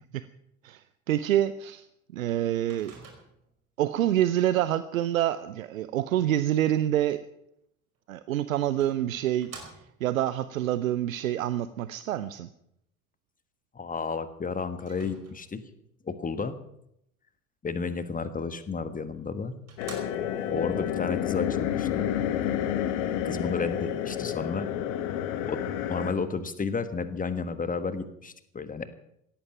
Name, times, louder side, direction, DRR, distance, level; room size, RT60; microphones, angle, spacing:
voice 1, 0.6-1.9 2.1-2.9 3.8-7.2 8.1-9.5 10.0-12.5, right 12 dB, 70° right, 14 dB, 0.7 m, -27 dB
Microwave oven, 2.7-3.6 7.9-8.0 8.8-10.2 14.8-15.7 18.8-18.9 19.3-19.4 19.7-20.5, right 5 dB, 35° right, 5.1 m, -48 dB
voice 2, 13.7-15.6 16.0-16.6 17.6-19.6 20.5-22.1 23.2-24.7 25.5-25.6 25.9-28.9, left 4 dB, 20° left, 11 dB, 1.4 m, -32 dB
sound 1, 19.8-26.1, left 10 dB, 60° left, 1.5 m, -29 dB
17.0 x 14.0 x 5.9 m, 0.77 s
figure-of-eight pair, 65°, 42 cm